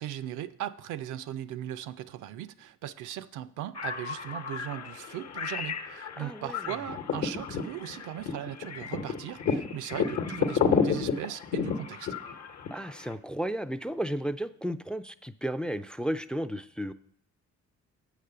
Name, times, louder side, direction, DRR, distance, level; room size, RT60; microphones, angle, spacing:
voice 1, 0.0-12.1, right 11 dB, 80° right, 0.5 m, -38 dB
sound 1, 3.7-13.1, left 6 dB, 60° left, 1.0 m, -31 dB
voice 2, 6.2-6.6 12.7-16.9, equal, 5° left, 0.3 m, -33 dB
7.9 x 5.0 x 6.8 m
cardioid pair, 90°, 30 cm